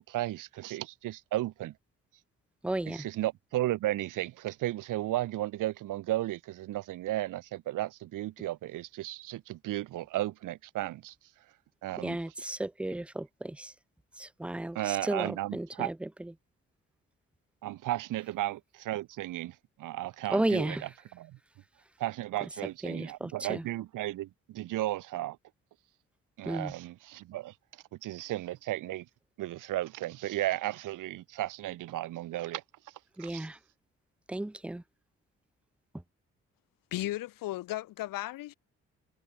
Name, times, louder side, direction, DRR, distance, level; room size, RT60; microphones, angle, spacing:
voice 1, 0.0-1.7 2.9-11.1 11.8-12.2 14.7-15.9 17.6-21.4 22.0-25.4 26.4-27.5 28.0-29.1 29.4-32.6 33.2-33.5, right 15 dB, 70° right, 0.7 m, -34 dB
voice 2, 2.6-3.0 12.0-13.6 14.4-14.8 15.1-15.9 20.3-20.8 22.8-23.6 26.5-26.7 33.2-33.5 34.3-34.8, right 1 dB, 5° right, 0.5 m, -33 dB
voice 3, 36.9-38.5, left 16 dB, 85° left, 2.6 m, -35 dB
supercardioid pair, 50°, 32 cm